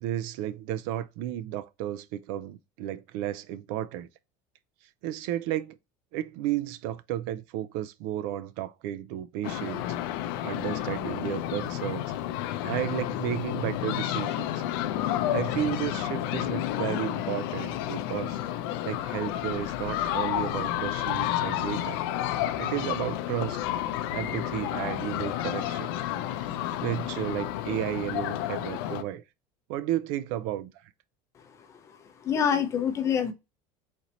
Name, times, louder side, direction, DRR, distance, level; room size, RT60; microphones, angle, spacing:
voice 1, 0.0-4.1 5.0-5.8 6.1-10.0 10.4-12.0 12.6-14.6 15.3-18.4 18.8-22.0 22.5-23.6 24.1-26.0 26.5-29.2 29.7-30.9, right 12 dB, 55° right, 0.4 m, -33 dB
sound 1, 9.4-29.0, left 12 dB, 70° left, 0.5 m, -31 dB
voice 2, 31.4-33.3, left 7 dB, 25° left, 0.6 m, -28 dB
4.2 x 3.0 x 3.9 m
cardioid pair, 175°, 13 cm